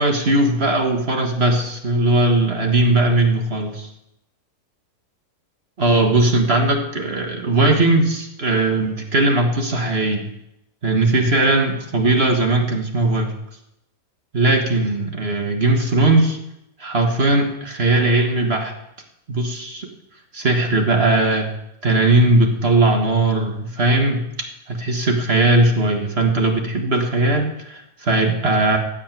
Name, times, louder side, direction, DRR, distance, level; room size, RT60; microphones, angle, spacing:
voice 1, 0.0-3.9 5.8-10.3 10.8-13.3 14.3-16.4 16.8-18.7 19.3-19.9 20.3-21.5 21.8-24.2 24.7-28.8, right 2 dB, 40° right, 3 dB, 1.8 m, -18 dB
15.5 x 5.8 x 9.1 m, 0.84 s
omnidirectional pair, 1.7 m